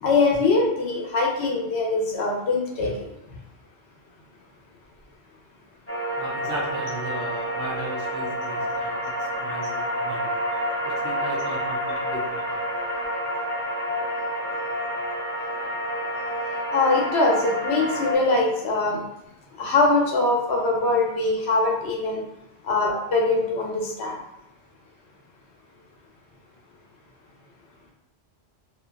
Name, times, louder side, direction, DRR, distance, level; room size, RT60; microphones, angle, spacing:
voice 1, 0.0-3.1 16.7-19.0 19.6-22.2 22.6-24.2, left 3 dB, 80° left, -1 dB, 0.9 m, -22 dB
sound 1, 5.9-18.2, equal, 20° left, 0.4 m, -29 dB
voice 2, 6.2-10.3 10.8-12.6, right 1 dB, 65° right, -2 dB, 0.8 m, -36 dB
2.8 x 2.2 x 2.3 m, 0.85 s
omnidirectional pair, 1.1 m